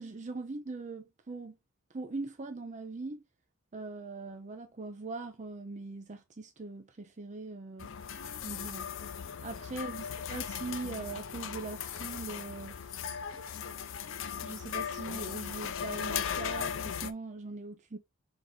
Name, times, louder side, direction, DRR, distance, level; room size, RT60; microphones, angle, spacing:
voice 1, 0.0-1.5 1.9-3.2 3.7-7.9 8.4-8.9 9.4-13.1 14.4-18.0, right 3 dB, 35° right, 0.6 m, -41 dB
sound 1, 7.8-17.1, left 7 dB, 65° left, 0.5 m, -38 dB
3.9 x 3.6 x 3.3 m
head